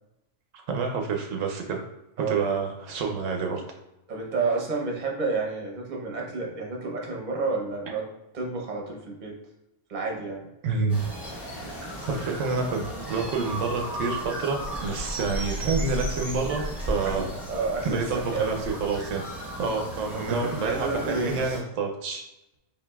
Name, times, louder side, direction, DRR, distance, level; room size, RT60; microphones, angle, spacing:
voice 1, 0.7-1.8 2.3-3.6 10.6-11.1 11.8-12.8 13.1-17.3 17.8-19.2 19.6-22.2, right 4 dB, 80° right, 2 dB, 1.0 m, -28 dB
voice 2, 4.1-8.1 8.3-9.4 9.9-10.5 17.0-18.6 20.3-21.6, right 3 dB, 40° right, 0 dB, 0.8 m, -30 dB
sound 1, 10.9-21.6, right 1 dB, ahead, 0.9 m, -35 dB
sound 2, 11.1-13.9, left 3 dB, 75° left, 1.0 m, -48 dB
5.0 x 2.7 x 2.3 m, 0.93 s
omnidirectional pair, 1.3 m